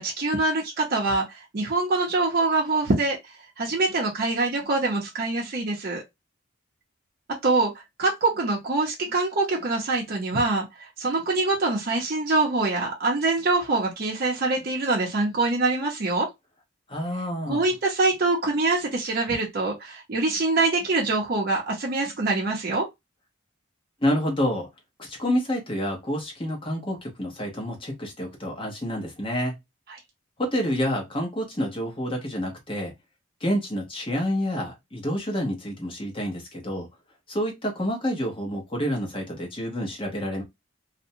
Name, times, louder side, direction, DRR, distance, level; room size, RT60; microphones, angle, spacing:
voice 1, 0.0-3.2 3.6-6.0 7.4-7.7 8.0-10.7 11.0-16.3 17.5-22.9, right 3 dB, 45° right, 0.6 m, -24 dB
voice 2, 16.9-17.6 24.0-24.7 25.0-29.5 30.4-32.9 33.4-36.9 37.3-40.4, equal, 25° left, 0.8 m, -28 dB
2.5 x 2.1 x 2.6 m
head